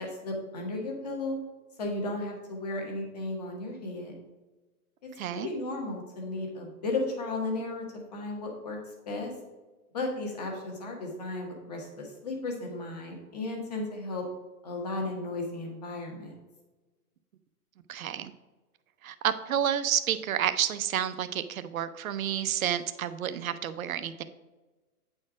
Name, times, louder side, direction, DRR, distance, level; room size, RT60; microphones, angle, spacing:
voice 1, 0.0-1.4 1.8-4.1 5.0-7.8 8.1-9.3 9.9-14.3 14.6-16.3, left 2 dB, 25° left, 1 dB, 1.2 m, -34 dB
voice 2, 5.2-5.5 17.9-18.3 19.0-24.2, right 10 dB, 65° right, 12 dB, 0.6 m, -30 dB
8.6 x 4.4 x 4.9 m, 1.2 s
hypercardioid pair, 175°, 46 cm